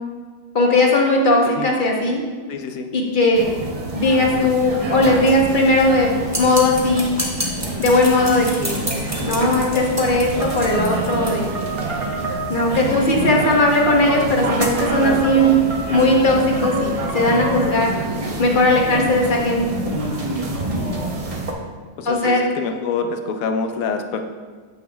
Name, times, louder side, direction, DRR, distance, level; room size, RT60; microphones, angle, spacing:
voice 1, 0.5-2.2 2.9-3.5 3.9-7.2 7.8-8.8 9.3-11.4 12.5-15.5 15.9-17.9 18.4-19.6 22.1-22.4, left 1 dB, 40° left, 0 dB, 0.8 m, -18 dB
voice 2, 2.5-2.9 9.2-9.6 13.1-13.4 15.0-15.4 18.9-19.1 20.8-21.0 22.0-24.2, left 5 dB, 65° left, 6 dB, 1.0 m, -27 dB
sound 1, 3.3-21.5, right 2 dB, 60° right, 0.3 m, -27 dB
sound 2, 6.3-11.3, right 1 dB, 15° right, 0.9 m, -29 dB
sound 3, 10.4-17.8, right 2 dB, 45° right, 1.0 m, -30 dB
9.2 x 7.0 x 2.3 m, 1.5 s
omnidirectional pair, 1.7 m